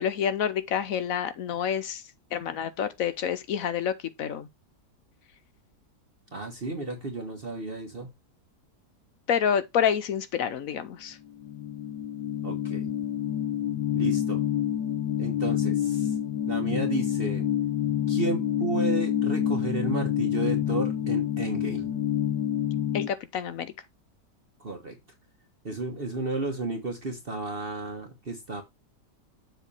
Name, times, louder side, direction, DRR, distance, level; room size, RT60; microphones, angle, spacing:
voice 1, 0.0-2.0 2.3-4.5 9.3-11.2 22.9-23.7, left 8 dB, 65° left, 1.1 m, -28 dB
voice 2, 6.3-8.1 12.4-12.9 13.9-14.4 15.2-16.1 16.5-17.5 18.1-22.0 24.6-25.0 25.6-28.6, right 2 dB, 35° right, 1.4 m, -32 dB
sound 1, 11.4-23.1, left 10 dB, 80° left, 1.3 m, -27 dB
7.3 x 3.3 x 5.3 m
omnidirectional pair, 1.8 m